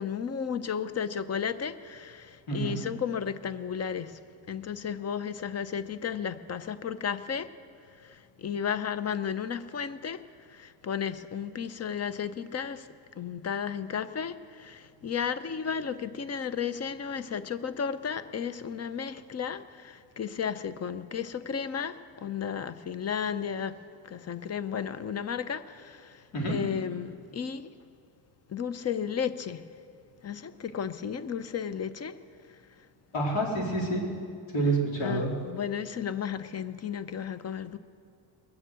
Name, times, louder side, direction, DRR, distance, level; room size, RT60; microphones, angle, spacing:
voice 1, 0.0-4.2 4.5-7.5 7.9-12.9 13.1-23.8 24.0-27.7 28.5-29.7 30.2-32.2 32.5-32.9 35.0-37.8, left 7 dB, 30° left, 0.7 m, -34 dB
voice 2, 2.5-2.8 26.3-26.6 33.1-34.0 34.5-35.3, right 2 dB, 70° left, 4.2 m, -28 dB
21.0 x 7.3 x 8.2 m
cardioid pair, 100°, 48 cm